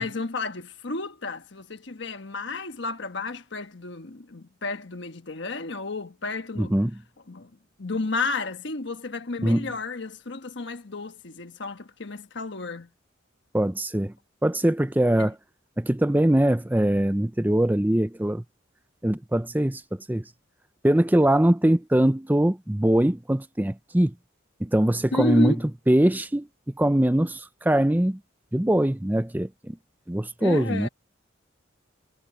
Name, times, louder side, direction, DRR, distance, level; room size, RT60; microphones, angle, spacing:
voice 1, 0.0-6.8 7.3-7.5 7.8-12.9 15.2-15.3 25.1-25.6 30.4-30.9, left 3 dB, 60° left, 1.3 m, -32 dB
voice 2, 6.6-6.9 9.4-9.7 13.5-14.1 14.4-15.3 15.8-18.4 19.0-19.8 20.1-20.2 20.8-24.1 24.6-25.5 25.9-26.5 26.8-28.2 28.5-29.8 30.1-30.9, right 1 dB, 10° right, 0.6 m, -22 dB
head